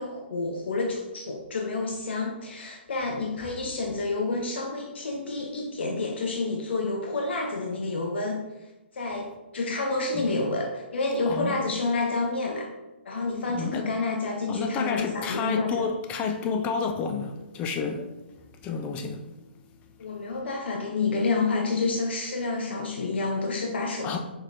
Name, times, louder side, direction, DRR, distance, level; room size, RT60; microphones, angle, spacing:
voice 1, 0.0-8.4 8.9-12.7 13.0-15.8 20.0-24.2, left 3 dB, 70° left, 0.6 m, -29 dB
voice 2, 13.5-13.8 14.5-18.1 18.6-19.3 24.0-24.2, left 5 dB, 20° left, 0.4 m, -30 dB
4.8 x 4.2 x 2.6 m
hypercardioid pair, 135°, 6 cm